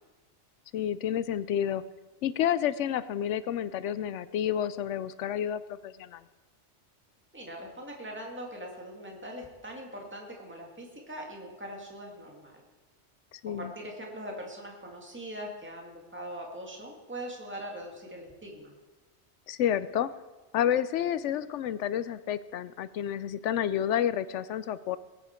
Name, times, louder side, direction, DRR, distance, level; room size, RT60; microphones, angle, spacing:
voice 1, 0.7-1.8 2.2-6.2 13.3-13.7 19.5-20.1 20.5-25.0, left 10 dB, 90° left, 15 dB, 0.9 m, -30 dB
voice 2, 7.3-12.5 13.4-18.8, equal, 10° right, 0 dB, 2.0 m, -41 dB
20.5 x 9.0 x 4.4 m, 1.2 s
omnidirectional pair, 1.2 m